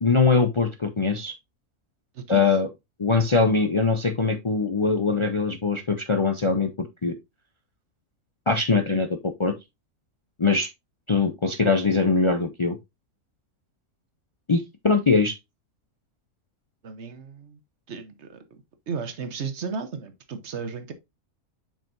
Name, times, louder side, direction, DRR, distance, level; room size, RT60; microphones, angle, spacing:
voice 1, 0.0-1.3 2.3-2.7 3.0-7.1 8.5-9.5 10.4-10.7 11.1-12.8 14.5-15.3, left 4 dB, 55° left, 0.3 m, -22 dB
voice 2, 2.1-2.5 16.8-17.6 17.9-18.4 18.9-20.9, right 5 dB, 55° right, 1.2 m, -34 dB
7.5 x 5.0 x 2.6 m
omnidirectional pair, 1.5 m